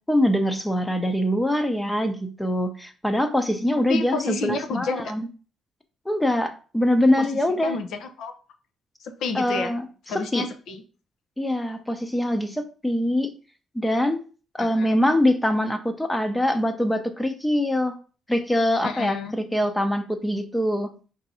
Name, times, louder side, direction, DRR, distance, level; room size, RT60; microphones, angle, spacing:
voice 1, 0.1-5.3 6.1-7.8 9.3-9.8 10.1-10.5 11.4-13.3 13.7-14.2 14.5-18.0 18.3-20.9, left 1 dB, 10° left, 7 dB, 0.7 m, -23 dB
voice 2, 3.9-5.1 7.2-7.3 7.6-8.3 9.0-9.7 10.1-10.8 14.6-14.9 18.8-19.3, left 4 dB, 75° left, 7 dB, 0.6 m, -30 dB
4.5 x 2.7 x 4.1 m, 0.37 s
cardioid pair, 110°, 0 cm